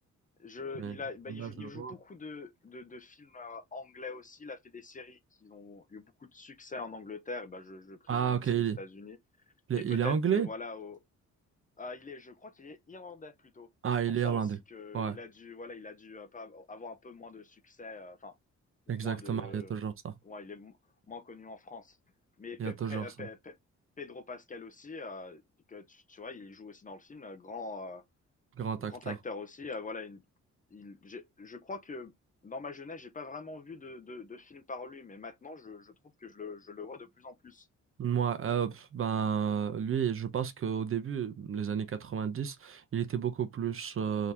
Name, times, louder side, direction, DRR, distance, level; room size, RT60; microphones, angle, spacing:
voice 1, 0.4-9.2 9.7-11.0 11.8-13.7 14.1-18.3 18.9-19.7 20.2-20.7 21.1-22.0 22.4-23.6 24.0-25.4 25.7-28.0 28.8-30.2 30.7-32.1 32.4-37.7, left 3 dB, 25° left, 0.6 m, -44 dB
voice 2, 1.3-1.9 8.1-8.8 9.7-10.5 13.8-14.6 14.9-15.2 18.9-20.1 22.6-23.0 28.6-29.2 38.0-44.3, right 8 dB, 45° right, 0.7 m, -31 dB
3.7 x 2.9 x 3.3 m
cardioid pair, 120°, 30 cm